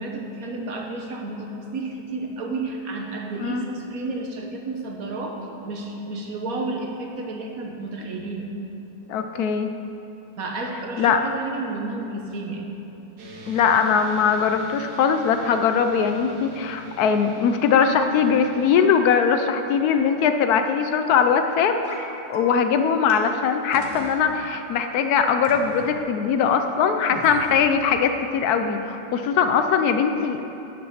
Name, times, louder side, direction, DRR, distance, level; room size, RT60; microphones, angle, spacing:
voice 1, 0.0-8.5 10.4-12.7, right 2 dB, 55° right, 1 dB, 1.3 m, -31 dB
voice 2, 9.1-9.7 11.0-11.2 13.5-30.4, left 6 dB, 70° left, 7 dB, 0.9 m, -21 dB
sound 1, 13.2-18.9, right 2 dB, 75° right, 1.8 m, -42 dB
sound 2, 21.8-22.0 22.3-22.4 23.1-23.2 23.7-24.2 25.4-25.9 27.1-27.8, left 1 dB, 35° left, 1.1 m, -38 dB
10.0 x 5.9 x 6.5 m, 3.0 s
omnidirectional pair, 2.0 m